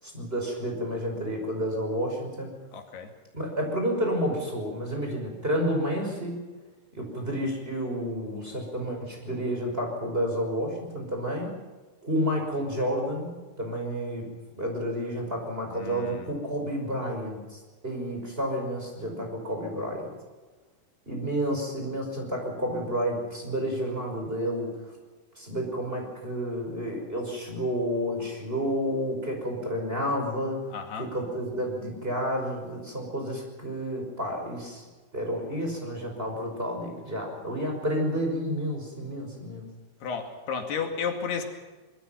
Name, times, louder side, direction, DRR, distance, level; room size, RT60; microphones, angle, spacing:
voice 1, 0.0-2.5 3.3-6.4 6.9-11.5 12.0-13.3 13.6-14.3 14.6-20.1 21.1-24.7 25.4-30.6 31.0-34.8 35.1-39.7, equal, 15° right, 1 dB, 5.4 m, -30 dB
voice 2, 2.7-3.1 15.7-16.4 30.7-31.1 40.0-41.4, left 6 dB, 80° left, 3 dB, 4.3 m, -33 dB
25.0 x 21.5 x 5.8 m, 1.3 s
omnidirectional pair, 4.6 m